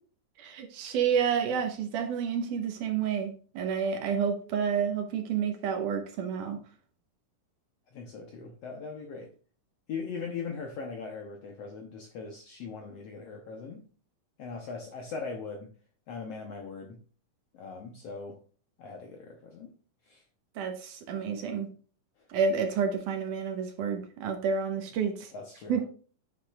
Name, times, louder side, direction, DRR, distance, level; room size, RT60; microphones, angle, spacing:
voice 1, 0.4-6.6 20.6-21.7 22.3-25.3 25.7-25.8, right 6 dB, 70° right, 2.5 m, -29 dB
voice 2, 7.9-9.3 9.9-13.8 14.4-15.7 16.1-17.0 17.5-18.4 18.8-19.7 20.0-20.2 25.3-25.8, left 5 dB, 70° left, 1.5 m, -40 dB
9.6 x 7.2 x 2.4 m
omnidirectional pair, 3.9 m